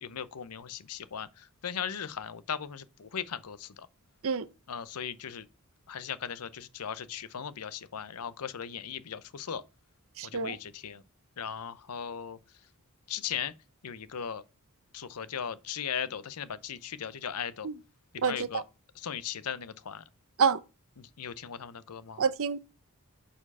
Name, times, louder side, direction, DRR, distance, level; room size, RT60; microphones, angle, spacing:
voice 1, 0.0-3.9 4.7-5.5 5.9-9.6 10.2-11.0 11.4-12.4 13.1-13.5 13.8-14.4 14.9-17.7 18.1-18.6 18.9-20.0 21.0-22.2, left 8 dB, 85° left, 0.7 m, -38 dB
voice 2, 10.2-10.6 17.6-17.7 18.2-18.6 20.4-20.6 22.2-22.6, right 6 dB, 65° right, 0.6 m, -27 dB
7.3 x 4.4 x 5.4 m
head